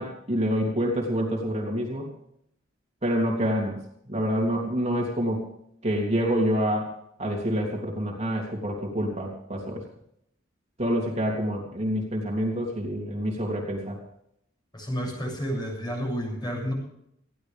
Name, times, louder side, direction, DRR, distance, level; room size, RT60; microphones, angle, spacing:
voice 1, 0.0-2.1 3.0-3.8 4.1-5.5 5.8-6.9 7.2-9.8 10.8-14.0, equal, 35° right, -1 dB, 3.2 m, -27 dB
voice 2, 14.7-16.7, equal, 20° left, 0 dB, 7.4 m, -30 dB
20.5 x 15.5 x 3.6 m, 0.73 s
head